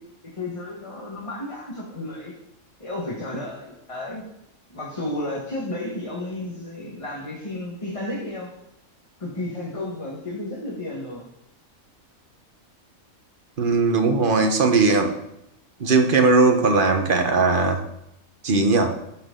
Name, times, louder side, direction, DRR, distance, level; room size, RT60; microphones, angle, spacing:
voice 1, 0.3-2.3 2.8-4.2 4.7-8.5 9.2-11.2, left 1 dB, 25° left, -4 dB, 1.6 m, -32 dB
voice 2, 13.6-15.1 15.8-17.8 18.4-18.9, right 3 dB, 40° right, 5 dB, 1.2 m, -19 dB
13.0 x 6.2 x 3.8 m, 0.83 s
omnidirectional pair, 1.4 m